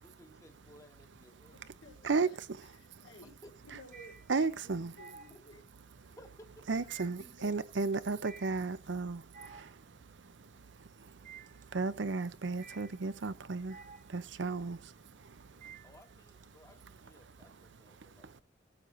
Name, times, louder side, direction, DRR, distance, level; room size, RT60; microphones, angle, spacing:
voice 1, 0.0-1.6 3.2-3.5 5.3-5.4 6.2-7.0 15.8-18.4, equal, 15° left, 1.4 m, -58 dB
sound 1, 1.4-1.6 2.0-16.4, right 5 dB, 40° right, 0.9 m, -55 dB
voice 2, 1.5-2.4 2.8-3.3 3.6-5.6 6.7-7.6 8.0-8.2, left 1 dB, 80° left, 4.1 m, -56 dB
voice 3, 4.3-4.9 6.7-9.2 11.7-13.7 14.1-14.8, right 4 dB, 75° right, 0.6 m, -33 dB
17.0 x 8.4 x 2.6 m
head